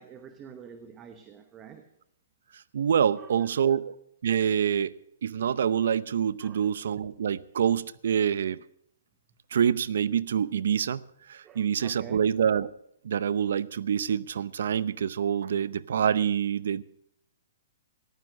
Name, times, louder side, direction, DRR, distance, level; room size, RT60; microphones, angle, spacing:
voice 1, 0.0-1.9 3.1-3.8 6.4-6.7 11.4-12.2, right 7 dB, 20° right, 0.9 m, -47 dB
voice 2, 2.7-3.9 4.2-4.9 5.2-8.6 9.5-11.0 11.3-12.7 13.0-16.8, right 8 dB, 70° right, 0.6 m, -26 dB
14.0 x 12.0 x 6.2 m
hypercardioid pair, 155°, 0 cm